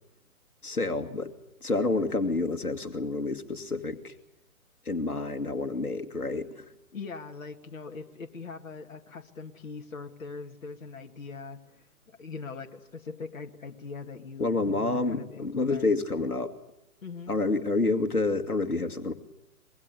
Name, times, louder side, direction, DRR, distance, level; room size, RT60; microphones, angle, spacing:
voice 1, 0.6-1.3 1.6-4.1 4.9-6.6 14.4-16.5 17.3-19.1, left 3 dB, 80° left, 8 dB, 2.3 m, -28 dB
voice 2, 6.9-11.6 12.2-15.9 17.0-17.3, left 4 dB, 65° left, 3 dB, 2.2 m, -41 dB
25.5 x 22.5 x 8.3 m, 0.85 s
figure-of-eight pair, 135°, 44 cm